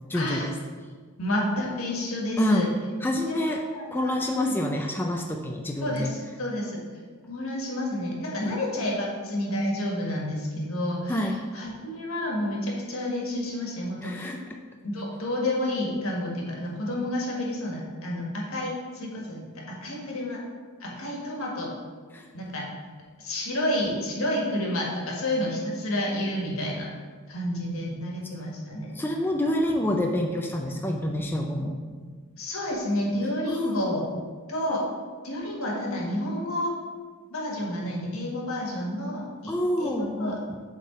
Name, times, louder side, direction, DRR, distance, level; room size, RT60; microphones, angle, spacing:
voice 1, 0.1-0.6 2.4-2.7 3.0-3.6 3.9-6.1 8.4-8.6 11.1-11.4 14.0-14.6 22.1-22.3 28.9-32.2 33.5-33.8 39.5-40.4, left 1 dB, 10° left, 1 dB, 0.4 m, -27 dB
voice 2, 1.2-2.7 3.3-4.6 5.8-6.9 7.3-14.3 14.8-20.4 20.8-21.7 22.3-22.6 23.2-26.9 27.3-28.9 32.4-34.1 34.5-34.8 35.2-36.7 37.3-39.5 39.8-40.4, left 1 dB, 75° left, -2 dB, 1.5 m, -30 dB
7.5 x 3.7 x 4.3 m, 1.5 s
head